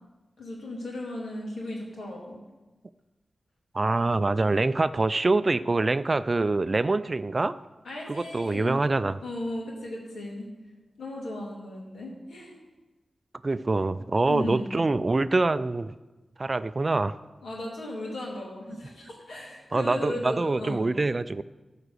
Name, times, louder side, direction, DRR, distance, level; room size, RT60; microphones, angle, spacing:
voice 1, 0.4-2.4 7.8-8.7 9.2-10.5 11.0-12.5 14.2-14.8 17.4-20.8, left 1 dB, 90° left, -3 dB, 3.1 m, -36 dB
voice 2, 3.7-7.6 8.1-9.2 13.4-15.9 16.4-17.2 19.7-21.4, right 3 dB, 35° right, 14 dB, 0.4 m, -25 dB
14.0 x 5.0 x 6.7 m, 1.1 s
wide cardioid pair, 85°, 0 cm